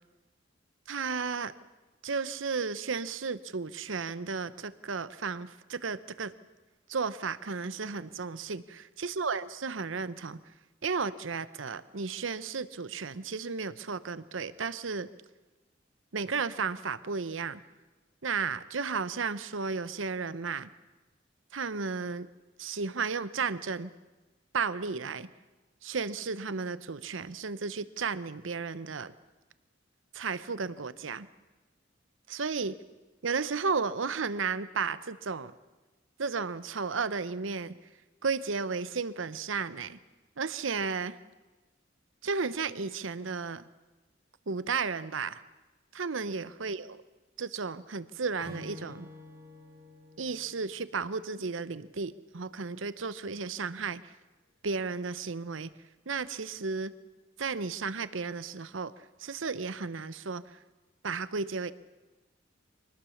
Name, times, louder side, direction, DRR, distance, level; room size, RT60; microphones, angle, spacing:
voice 1, 0.9-1.5 2.0-6.3 6.9-10.4 10.8-15.1 16.1-17.6 18.2-20.7 21.5-22.3 22.6-23.9 24.5-25.3 25.8-29.1 30.1-31.3 32.3-32.7 33.2-35.5 36.2-37.7 38.2-40.0 40.4-41.2 42.2-43.6 44.5-45.4 45.9-47.0 47.4-49.1 50.2-54.1 54.6-55.7 56.1-56.9 57.4-60.6 61.0-61.7, right 5 dB, 75° right, 15 dB, 0.9 m, -33 dB
Acoustic guitar / Strum, 48.4-51.8, left 2 dB, 25° right, 7.3 m, -49 dB
24.5 x 19.5 x 7.1 m, 1.2 s
head